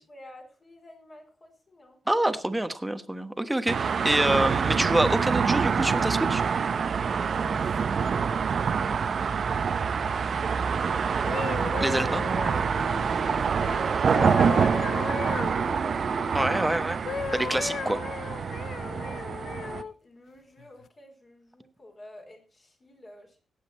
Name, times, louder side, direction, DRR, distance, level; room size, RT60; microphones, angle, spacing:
voice 1, 0.0-2.0 7.3-7.7 7.9-11.7 13.0-16.2 17.6-18.0 18.9-23.4, left 1 dB, 30° left, 1 dB, 4.4 m, -50 dB
voice 2, 2.1-6.4 11.8-12.2 16.3-17.0 17.3-18.0, right 1 dB, 10° right, 10 dB, 1.1 m, -26 dB
sound 1, 3.7-19.8, right 6 dB, 50° right, 0.7 m, -26 dB
sound 2, 11.1-16.6 17.1-19.9 20.6-20.9, left 7 dB, 55° left, 0.5 m, -36 dB
17.5 x 8.2 x 4.3 m, 0.35 s
cardioid pair, 120°, 0 cm